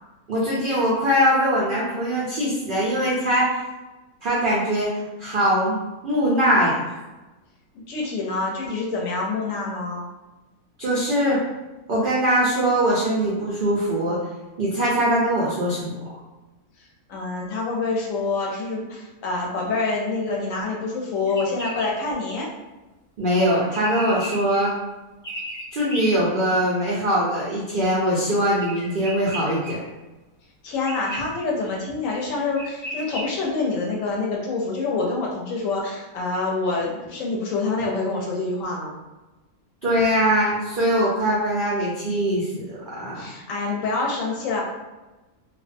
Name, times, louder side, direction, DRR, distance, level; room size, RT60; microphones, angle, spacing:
voice 1, 0.3-3.6 4.2-5.8 6.0-7.0 10.8-11.4 11.9-14.2 14.6-15.9 23.2-24.7 25.7-29.8 39.8-43.3, equal, 90° right, -6 dB, 0.4 m, -22 dB
voice 2, 7.9-10.1 17.1-22.5 30.6-39.0 43.1-44.6, left 3 dB, 70° left, -2 dB, 0.9 m, -26 dB
sound 1, 21.3-21.9 23.5-24.6 25.2-26.1 28.6-29.7 30.8-31.2 32.2-32.3 32.6-33.3, right 1 dB, 30° left, 0.3 m, -34 dB
2.5 x 2.1 x 2.5 m, 1.1 s
omnidirectional pair, 1.6 m